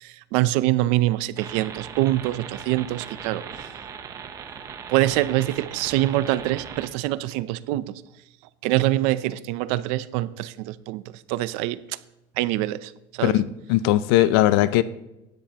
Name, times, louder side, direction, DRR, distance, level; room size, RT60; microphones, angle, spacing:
voice 1, 0.0-3.7 4.9-7.9 8.6-11.0 11.3-12.0 12.4-13.4, right 16 dB, 60° right, 0.5 m, -24 dB
sound 1, 1.4-6.9, right 7 dB, 25° right, 0.8 m, -39 dB
voice 2, 13.2-14.8, left 14 dB, 75° left, 0.6 m, -19 dB
15.5 x 10.5 x 2.9 m
cardioid pair, 165°, 13 cm